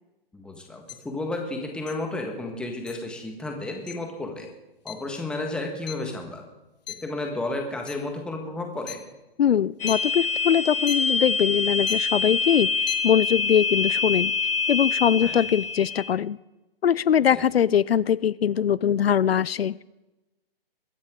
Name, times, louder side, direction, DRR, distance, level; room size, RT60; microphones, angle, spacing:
voice 1, 0.3-4.5 4.8-6.4 7.0-9.0 15.2-15.4 17.3-17.4, left 2 dB, 5° left, 2 dB, 1.5 m, -32 dB
sound 1, 0.9-1.0 1.9-2.0 2.9-3.0 3.9-4.0 4.9-5.0 5.4-6.5 6.9-7.1 7.7-8.1 8.8-8.9 9.7-10.0 10.9-11.0 11.8-12.1 12.7-13.0, left 11 dB, 45° left, 1.4 m, -37 dB
voice 2, 9.4-12.7 13.0-14.3 14.7-16.4 16.8-19.8, left 9 dB, 85° left, 21 dB, 0.5 m, -22 dB
sound 2, 9.8-16.1, left 4 dB, 70° left, 1.3 m, -26 dB
23.0 x 10.0 x 3.8 m, 1.0 s
hypercardioid pair, 150°, 30 cm